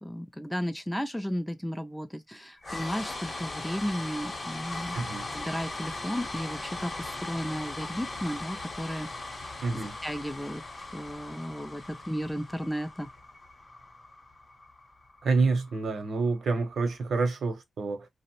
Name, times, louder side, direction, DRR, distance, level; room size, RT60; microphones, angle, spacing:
voice 1, 0.0-9.1 9.4-13.1, equal, 5° left, 0.3 m, -34 dB
sound 1, 2.6-16.7, left 2 dB, 25° left, 0.7 m, -39 dB
voice 2, 4.9-5.3 9.6-10.0 15.2-18.1, right 4 dB, 70° right, 0.7 m, -28 dB
2.8 x 2.0 x 2.9 m
wide cardioid pair, 170°, 0 cm